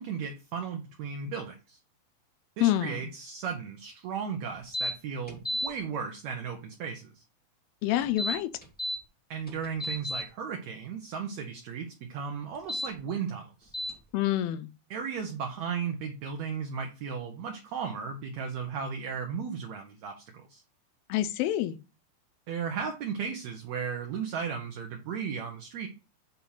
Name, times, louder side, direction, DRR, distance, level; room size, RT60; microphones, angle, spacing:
voice 1, 0.0-1.8 2.6-7.2 9.3-13.7 14.9-20.6 22.5-25.9, right 6 dB, 75° right, 1.7 m, -35 dB
voice 2, 2.6-3.0 7.8-8.5 14.1-14.7 21.1-21.8, left 13 dB, 90° left, 2.5 m, -27 dB
sound 1, 4.7-4.9 5.3-5.7 8.0-9.0 9.5-10.2 12.5-12.9 13.7-13.9, equal, 10° left, 0.5 m, -32 dB
8.3 x 2.9 x 5.5 m
omnidirectional pair, 4.1 m